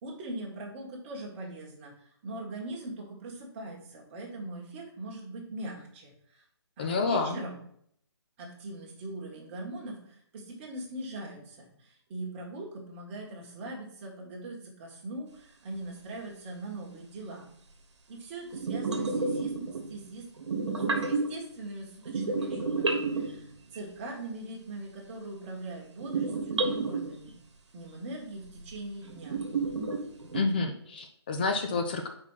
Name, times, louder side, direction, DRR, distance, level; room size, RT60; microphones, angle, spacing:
voice 1, 0.0-6.4 6.8-7.6 8.4-17.5 18.1-19.5 19.9-20.3 21.0-27.3 27.7-29.4, right 2 dB, 25° right, -2 dB, 1.5 m, -41 dB
voice 2, 6.8-7.4 30.3-32.1, left 4 dB, 20° left, 4 dB, 0.3 m, -29 dB
sound 1, 18.5-20.1 20.4-21.5 22.1-23.8 26.0-27.2 28.6-28.7 29.1-30.4, right 3 dB, 80° right, 1.2 m, -31 dB
4.8 x 4.2 x 5.6 m, 0.68 s
hypercardioid pair, 165°, 14 cm